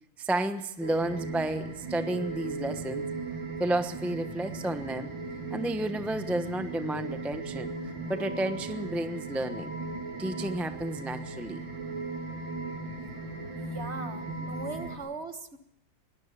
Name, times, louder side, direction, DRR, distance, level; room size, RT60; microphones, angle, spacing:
voice 1, 0.2-3.1 3.6-5.1 5.5-9.7 10.2-11.7, right 1 dB, ahead, 8 dB, 0.6 m, -32 dB
sound 1, 0.8-15.0, right 3 dB, 80° right, 3.5 m, -37 dB
voice 2, 13.5-15.6, right 3 dB, 40° right, 9 dB, 1.4 m, -39 dB
21.5 x 18.5 x 6.8 m, 0.84 s
omnidirectional pair, 2.0 m